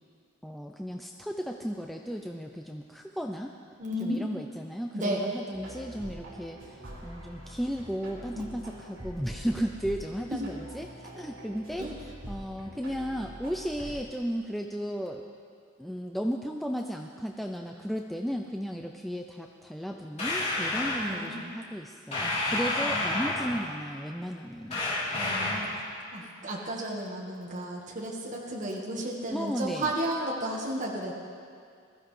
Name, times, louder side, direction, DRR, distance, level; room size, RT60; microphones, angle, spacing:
voice 1, 0.4-3.5 4.0-11.9 12.3-15.2 15.8-24.8 29.3-29.9, equal, ahead, 2 dB, 0.4 m, -35 dB
voice 2, 3.8-4.2 4.9-5.3 8.3-8.5 10.3-10.4 11.8-11.9 21.0-21.4 22.8-23.2 25.1-25.8 26.1-31.1, right 1 dB, 40° right, -3 dB, 1.6 m, -33 dB
sound 1, 5.5-14.0, equal, 80° right, 3.6 m, -44 dB
sound 2, 20.2-21.1 22.1-23.7 24.7-25.8, left 2 dB, 35° left, 3.4 m, -29 dB
21.0 x 14.0 x 3.3 m, 2.3 s
head